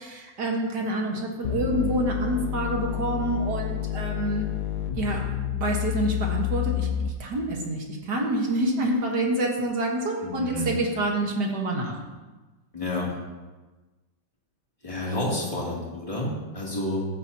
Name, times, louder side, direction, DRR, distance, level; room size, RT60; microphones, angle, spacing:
voice 1, 0.0-4.5 5.0-5.2 5.5-12.0, right 1 dB, 60° right, 0 dB, 2.0 m, -27 dB
sound 1, 1.4-7.4, left 11 dB, 65° left, 1.1 m, -29 dB
voice 2, 10.2-10.7 12.7-13.2 14.8-17.1, left 1 dB, 15° left, -6 dB, 2.7 m, -30 dB
14.5 x 8.5 x 2.8 m, 1.2 s
omnidirectional pair, 2.2 m